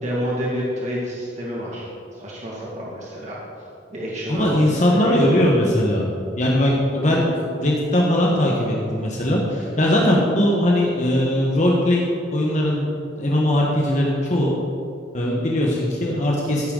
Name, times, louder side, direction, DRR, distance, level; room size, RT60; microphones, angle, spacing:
voice 1, 0.0-3.4 3.9-5.3, equal, 40° right, -6 dB, 2.2 m, -29 dB
voice 2, 4.3-6.0 6.3-12.0 12.3-12.9 13.2-14.5 15.1-16.7, left 1 dB, 40° left, -3 dB, 1.4 m, -20 dB
14.5 x 9.9 x 4.0 m, 2.5 s
head